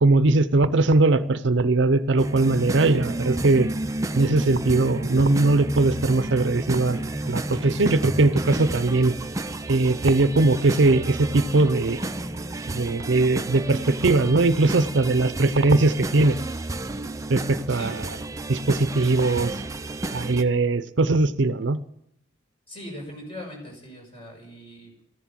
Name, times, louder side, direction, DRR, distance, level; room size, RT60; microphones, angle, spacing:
voice 1, 0.0-3.7 4.1-9.1 9.7-12.0 12.7-16.4 17.3-18.0 18.5-19.6 20.1-21.8, right 2 dB, 65° right, 14 dB, 0.6 m, -20 dB
sound 1, 2.2-20.4, right 2 dB, 15° right, 0.5 m, -31 dB
voice 2, 22.7-25.0, equal, 30° left, 0 dB, 6.4 m, -40 dB
14.0 x 11.5 x 7.5 m, 0.74 s
head